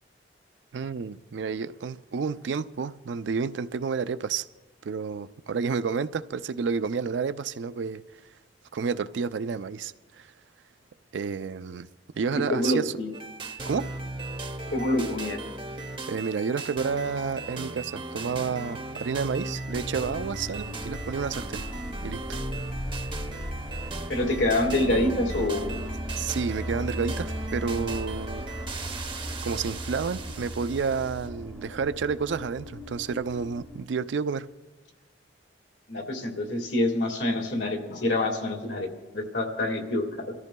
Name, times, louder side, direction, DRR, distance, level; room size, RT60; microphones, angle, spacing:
voice 1, 0.7-4.5 4.8-8.0 8.7-10.3 11.1-11.9 12.2-12.9 13.6-13.9 16.1-21.6 22.0-22.2 26.2-28.5 29.4-34.5, right 5 dB, 80° right, 0.4 m, -30 dB
voice 2, 12.3-13.1 14.7-15.4 24.1-25.8 35.9-38.9 39.1-40.3, left 1 dB, 80° left, 1.8 m, -26 dB
sound 1, 13.1-31.3, right 2 dB, 30° right, 0.7 m, -37 dB
sound 2, 19.7-33.8, equal, 5° left, 0.7 m, -37 dB
28.5 x 13.5 x 2.2 m
head